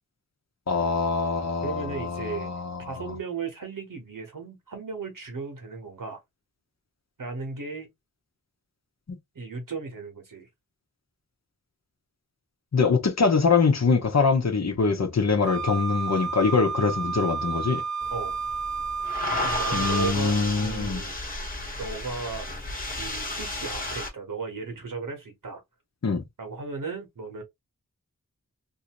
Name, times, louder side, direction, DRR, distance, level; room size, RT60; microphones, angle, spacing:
voice 1, 0.7-2.8 12.7-17.8 19.7-21.0 26.0-26.2, left 4 dB, 55° left, 0.8 m, -23 dB
voice 2, 1.6-2.5 2.9-6.2 7.2-7.9 9.3-10.5 18.1-18.4 19.4-21.2 21.8-22.5 23.0-25.6 26.4-27.4, right 4 dB, 80° right, 1.2 m, -35 dB
Wind instrument woodwind instrument, 15.4-20.2, right 5 dB, 60° right, 0.9 m, -31 dB
sound 1, 18.0-24.1, left 2 dB, 25° left, 1.1 m, -33 dB
2.7 x 2.6 x 2.9 m
wide cardioid pair, 55°, 32 cm